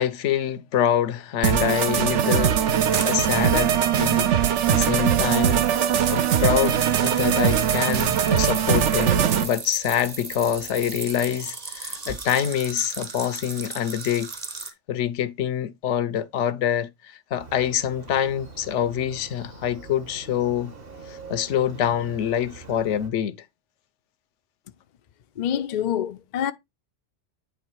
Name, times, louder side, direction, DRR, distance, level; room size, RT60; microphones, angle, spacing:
voice 1, 0.0-2.6 3.0-14.3 14.9-20.7 21.1-23.4, left 10 dB, 80° left, 1.0 m, -26 dB
sound 1, 1.4-9.4, right 9 dB, 75° right, 1.0 m, -21 dB
sound 2, 2.9-4.5 5.1-14.7, right 4 dB, 35° right, 1.1 m, -37 dB
Motorcycle, 17.4-23.1, right 4 dB, 50° right, 1.6 m, -43 dB
voice 2, 25.4-26.5, left 10 dB, 55° left, 0.5 m, -26 dB
9.1 x 3.3 x 4.5 m
omnidirectional pair, 1.2 m